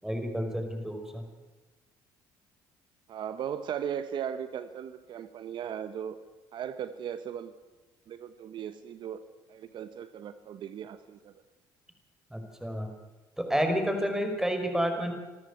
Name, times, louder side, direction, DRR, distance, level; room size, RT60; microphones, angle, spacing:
voice 1, 0.0-1.2 12.3-12.9 13.4-15.1, equal, 5° right, 5 dB, 5.3 m, -30 dB
voice 2, 3.1-6.2 6.5-7.5 8.1-9.2 9.5-11.3, right 9 dB, 55° right, 11 dB, 1.1 m, -37 dB
26.0 x 13.5 x 8.5 m, 1.2 s
supercardioid pair, 75°, 9 cm